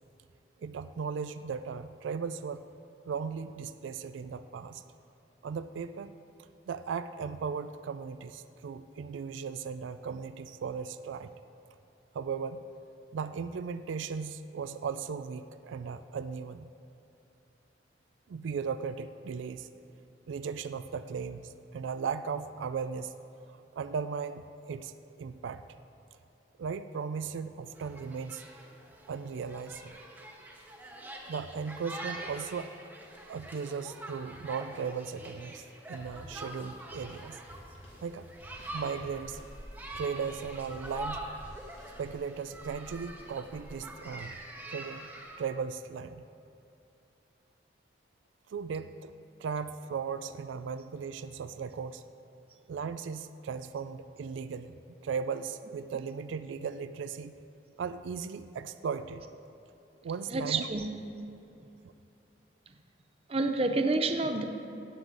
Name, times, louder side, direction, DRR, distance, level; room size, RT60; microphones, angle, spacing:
voice 1, 0.6-2.6 3.1-4.8 5.4-6.1 6.7-11.3 12.1-12.6 13.1-16.7 18.3-19.7 20.3-23.1 23.7-24.9 25.2-25.6 26.6-28.4 29.1-29.9 31.3-32.7 33.3-37.4 38.0-38.3 38.7-39.4 39.9-41.3 42.0-44.4 44.7-45.1 45.4-46.2 48.5-49.1 49.4-52.0 52.7-54.7 55.0-57.3 57.8-59.3 60.0-60.7 61.8-61.9, right 6 dB, 90° right, 12 dB, 0.4 m, -37 dB
sound 1, 27.8-45.4, right 1 dB, 10° right, 0.9 m, -44 dB
sound 2, 36.0-42.5, equal, 85° left, 2.7 m, -54 dB
voice 2, 60.3-60.9 63.3-64.4, right 2 dB, 30° right, 6 dB, 0.6 m, -28 dB
16.5 x 7.8 x 3.9 m, 2.7 s
head